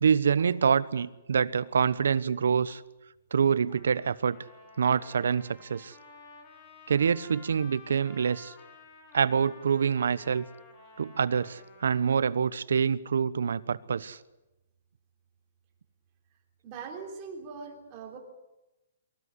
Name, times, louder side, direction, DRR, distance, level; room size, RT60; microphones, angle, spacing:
voice 1, 0.0-2.8 3.3-4.4 4.8-5.9 6.9-8.5 9.1-10.5 11.0-14.2, right 6 dB, 80° right, 1.0 m, -26 dB
Trumpet, 3.7-12.1, left 3 dB, 20° left, 3.3 m, -53 dB
voice 2, 16.6-18.2, right 5 dB, 20° right, 3.6 m, -41 dB
24.5 x 15.5 x 9.7 m
hypercardioid pair, 175°, 0 cm